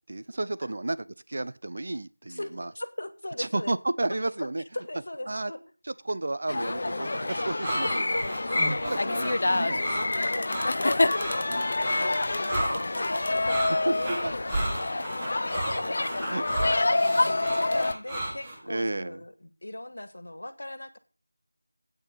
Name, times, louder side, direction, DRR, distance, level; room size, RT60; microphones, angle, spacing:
voice 1, 0.1-2.7 3.4-4.6 5.3-5.5 6.0-8.0 8.8-9.8 13.9-14.0 14.2-14.3 14.9-15.0 15.4-15.9 16.3-16.4 17.1-17.3 18.7-19.2, right 2 dB, 40° right, 0.7 m, -32 dB
voice 2, 2.3-3.7 4.7-5.6 7.4-7.5 7.8-9.2 9.9-11.1 11.4-11.6 11.9-14.7 17.0-21.0, left 1 dB, 60° left, 1.7 m, -39 dB
sound 1, 6.5-17.9, left 2 dB, 35° left, 0.6 m, -27 dB
sound 2, 7.3-18.6, right 1 dB, 10° right, 1.5 m, -34 dB
8.8 x 6.6 x 8.4 m
figure-of-eight pair, 175°, 0 cm